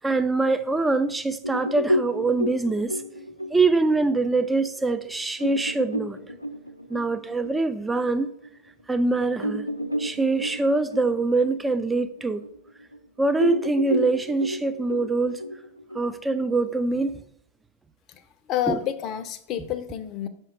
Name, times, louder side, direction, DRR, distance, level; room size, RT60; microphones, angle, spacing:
voice 1, 0.0-3.0 3.5-6.4 6.9-8.3 8.9-9.7 10.0-12.5 13.2-15.4 15.9-17.2 18.7-18.8, right 3 dB, 10° right, 0.4 m, -24 dB
sound 1, 1.4-8.5 8.9-9.0 9.4-13.0 13.4-16.5, equal, 90° left, 0.5 m, -31 dB
voice 2, 18.5-20.3, left 11 dB, 35° left, 0.6 m, -29 dB
5.6 x 4.5 x 4.9 m
figure-of-eight pair, 90°, 0 cm